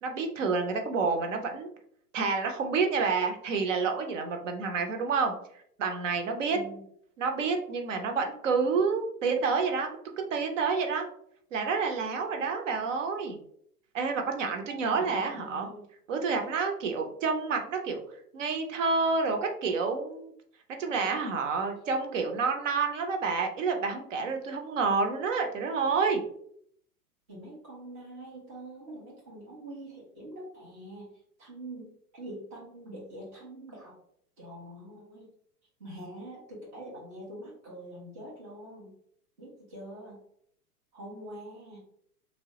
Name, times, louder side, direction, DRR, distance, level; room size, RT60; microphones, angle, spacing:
voice 1, 0.0-1.7 2.1-5.4 5.8-6.6 7.2-9.9 10.3-11.1 11.5-13.4 13.9-15.7 16.1-18.0 18.3-20.3 20.8-26.2, right 4 dB, 55° right, 4 dB, 0.6 m, -29 dB
voice 2, 6.5-6.8 14.7-15.9 27.3-31.1 31.4-33.9 34.4-35.3 35.8-39.0 39.4-40.2 40.9-41.8, right 1 dB, 15° right, -6 dB, 0.3 m, -44 dB
3.3 x 2.0 x 2.7 m, 0.67 s
figure-of-eight pair, 100°, 47 cm